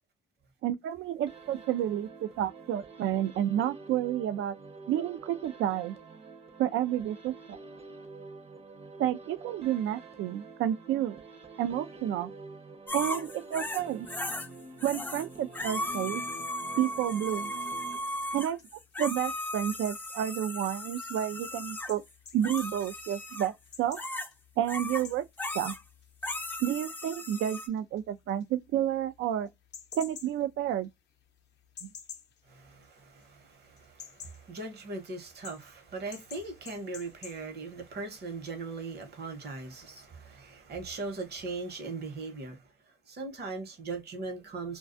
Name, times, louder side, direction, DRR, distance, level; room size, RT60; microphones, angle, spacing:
voice 1, 0.6-4.5 4.9-6.0 6.6-7.6 9.0-11.2 11.6-12.3 12.9-14.1 14.8-16.2 16.8-17.5 18.3-18.6 19.0-22.0 22.3-23.5 23.8-24.0 24.6-25.3 25.5-25.7 26.6-29.5 29.9-30.9 31.8-31.9, right 11 dB, 75° right, 0.4 m, -30 dB
sound 1, 1.3-18.5, right 3 dB, 30° right, 0.6 m, -48 dB
sound 2, 12.9-14.5 14.8-15.3 15.5-21.9 22.4-23.5 23.9-24.3 24.7-25.0 25.4-25.8 26.2-27.7, left 1 dB, 10° left, 0.4 m, -36 dB
sound 3, 18.2-33.4 33.7-37.5, left 7 dB, 60° left, 0.5 m, -52 dB
voice 2, 32.5-42.6 43.1-44.8, right 3 dB, 55° right, 0.9 m, -39 dB
2.3 x 2.3 x 2.4 m
cardioid pair, 90°, 20 cm